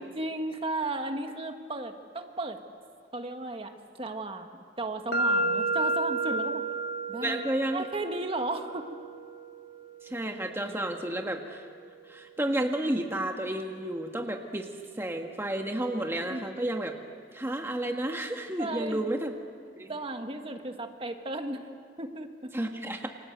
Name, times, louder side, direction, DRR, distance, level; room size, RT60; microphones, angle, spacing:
voice 1, 0.0-2.6 3.1-6.6 7.1-7.4 7.7-9.0 16.3-16.5 18.6-19.1 19.9-21.7 22.0-22.5, right 2 dB, 30° right, 5 dB, 1.6 m, -35 dB
sound 1, 5.1-13.0, right 2 dB, 60° left, 1.9 m, -33 dB
voice 2, 7.2-7.8 10.0-11.7 12.1-14.7 15.0-17.0 17.3-19.3 19.8-19.9 22.5-23.1, right 1 dB, 15° right, 3 dB, 1.5 m, -31 dB
29.0 x 25.5 x 8.1 m, 2.1 s
head